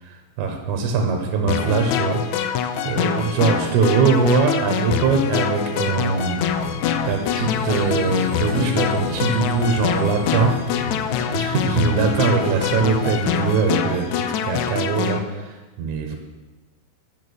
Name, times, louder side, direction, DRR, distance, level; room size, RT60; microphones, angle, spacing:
voice 1, 0.0-2.5 2.8-6.4 7.1-10.6 11.3-16.2, right 5 dB, 70° right, 3 dB, 2.4 m, -22 dB
sound 1, 1.5-15.2, left 8 dB, 80° left, 1.8 m, -25 dB
sound 2, 6.5-13.5, left 7 dB, 50° left, 1.6 m, -33 dB
sound 3, 7.4-13.4, right 7 dB, 90° right, 2.3 m, -36 dB
8.8 x 7.4 x 6.3 m, 1.2 s
omnidirectional pair, 3.9 m